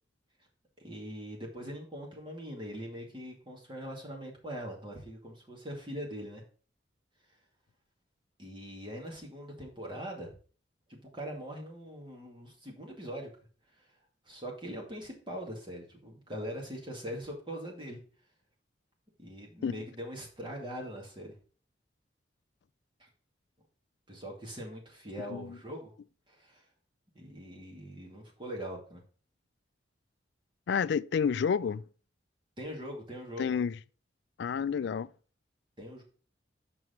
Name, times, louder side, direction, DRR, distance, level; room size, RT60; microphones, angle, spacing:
voice 1, 0.8-6.4 8.4-10.3 10.9-13.3 14.3-18.0 19.2-21.3 23.0-23.1 24.1-25.9 26.3-26.6 27.1-29.0 32.6-33.6 35.8-36.0, equal, 25° right, 2.2 m, -42 dB
voice 2, 30.7-31.8 33.4-33.8 34.4-35.1, left 6 dB, 65° left, 0.3 m, -30 dB
6.1 x 4.6 x 5.7 m
head